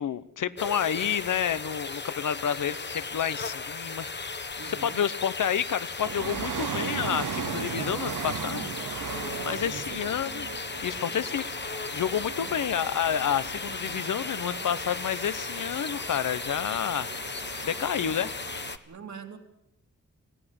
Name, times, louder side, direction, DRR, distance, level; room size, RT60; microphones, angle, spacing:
voice 1, 0.0-9.1 9.4-10.5 10.8-18.3, left 9 dB, 80° left, 16 dB, 1.0 m, -30 dB
sound 1, 0.6-18.8, left 4 dB, 35° left, 1.3 m, -36 dB
voice 2, 4.6-5.0 9.2-10.0 12.1-12.5 18.9-19.4, right 6 dB, 65° right, 5 dB, 2.8 m, -43 dB
sound 2, 6.0-18.8, right 9 dB, 90° right, 0.9 m, -38 dB
25.0 x 17.0 x 8.1 m, 0.79 s
wide cardioid pair, 125°, 30 cm